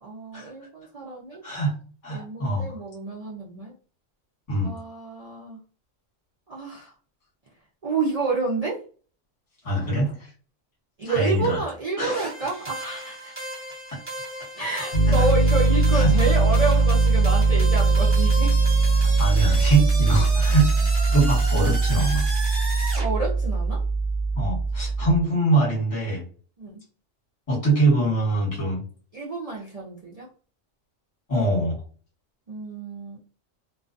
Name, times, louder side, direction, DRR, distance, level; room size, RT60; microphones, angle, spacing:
voice 1, 0.0-1.4 2.1-3.7 4.6-5.6 6.5-6.9 7.8-8.8 11.0-13.5 14.5-18.6 23.0-23.8 26.6-26.8 29.1-30.3 32.5-33.2, right 3 dB, 65° right, -5 dB, 0.3 m, -29 dB
voice 2, 1.4-1.7 2.0-2.8 4.5-4.7 9.6-10.3 11.0-11.6 12.0-12.3 15.1-15.3 15.9-16.3 19.2-20.7 21.1-22.3 24.4-26.2 27.5-28.8 31.3-31.8, right 2 dB, 30° left, -5 dB, 1.2 m, -23 dB
sound 1, 12.0-23.1, right 1 dB, 10° right, 0.9 m, -34 dB
Piano, 14.9-25.2, right 3 dB, 50° left, 0.6 m, -20 dB
2.3 x 2.3 x 2.5 m, 0.40 s
omnidirectional pair, 1.3 m